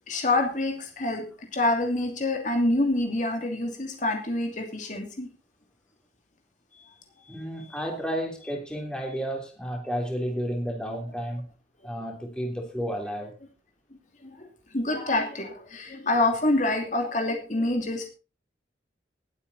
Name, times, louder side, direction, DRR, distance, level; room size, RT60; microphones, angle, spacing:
voice 1, 0.1-5.3 6.7-6.9 7.2-7.8 14.2-18.1, left 2 dB, 40° left, 3 dB, 2.8 m, -27 dB
voice 2, 7.3-11.4 11.8-13.3, equal, 5° left, 1 dB, 3.4 m, -32 dB
19.5 x 8.7 x 4.2 m, 0.33 s
head